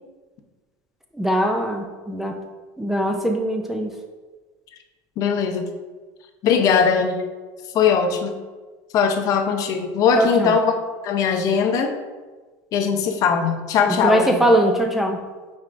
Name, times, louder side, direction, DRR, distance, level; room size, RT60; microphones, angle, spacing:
voice 1, 1.1-2.4 2.8-3.9 10.2-10.6 13.9-15.2, right 1 dB, 5° right, 2 dB, 0.5 m, -21 dB
voice 2, 5.2-5.7 6.4-7.2 7.7-8.3 8.9-10.7 11.0-11.9 12.7-14.4, left 6 dB, 45° left, 5 dB, 0.7 m, -20 dB
9.2 x 4.4 x 2.6 m, 1.3 s
supercardioid pair, 140°, 9 cm